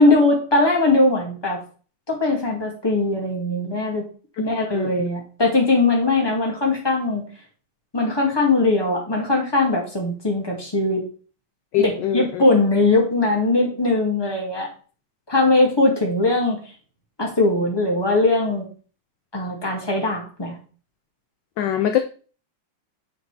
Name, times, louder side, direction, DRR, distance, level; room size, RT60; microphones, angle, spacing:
voice 1, 0.0-1.6 2.1-4.0 4.4-7.2 7.9-11.0 11.8-14.7 15.3-16.6 17.2-18.6 19.3-20.6, left 2 dB, 10° left, -1 dB, 2.0 m, -20 dB
voice 2, 4.7-5.1 11.7-12.4 21.6-22.0, left 10 dB, 70° left, 7 dB, 1.1 m, -23 dB
8.3 x 6.0 x 3.3 m, 0.39 s
omnidirectional pair, 2.2 m